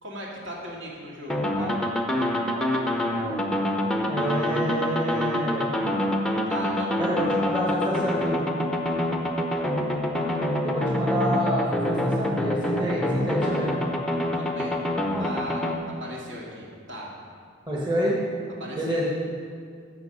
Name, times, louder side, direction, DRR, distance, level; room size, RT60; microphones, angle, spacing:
voice 1, 0.0-2.0 6.5-6.9 14.4-14.8 15.2-17.1 18.6-19.0, equal, 65° right, -3 dB, 2.0 m, -38 dB
sound 1, 1.3-15.7, left 1 dB, 5° left, 0.6 m, -26 dB
voice 2, 4.0-5.7 7.0-8.4 10.6-13.7 17.7-18.2 18.8-19.1, equal, 20° right, -4 dB, 1.4 m, -28 dB
14.0 x 5.3 x 5.4 m, 2.2 s
head